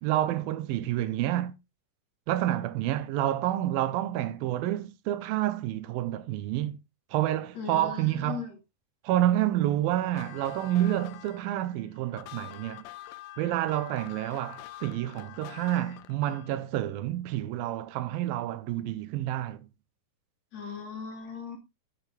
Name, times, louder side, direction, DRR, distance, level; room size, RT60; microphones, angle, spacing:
voice 1, 0.0-1.6 2.3-6.8 7.1-8.4 9.0-12.8 13.4-19.7, right 13 dB, 90° right, 2.6 m, -29 dB
voice 2, 7.5-8.6 20.5-21.6, left 6 dB, 50° left, 3.3 m, -38 dB
sound 1, 10.0-16.6, left 15 dB, 90° left, 2.5 m, -46 dB
9.7 x 9.0 x 3.4 m
omnidirectional pair, 4.1 m